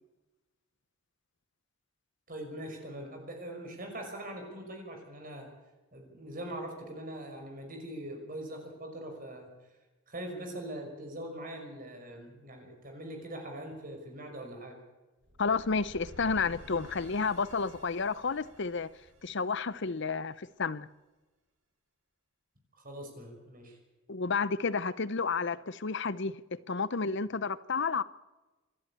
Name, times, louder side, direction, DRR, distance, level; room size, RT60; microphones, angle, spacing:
voice 1, 2.3-5.5 5.9-9.5 10.1-14.8 22.8-23.8, right 1 dB, 40° right, 5.8 m, -42 dB
sound 1, 15.2-20.3, equal, 90° right, 5.9 m, -52 dB
voice 2, 15.4-18.9 19.2-20.9 24.1-28.0, left 4 dB, 55° left, 0.8 m, -31 dB
26.5 x 12.0 x 8.7 m
head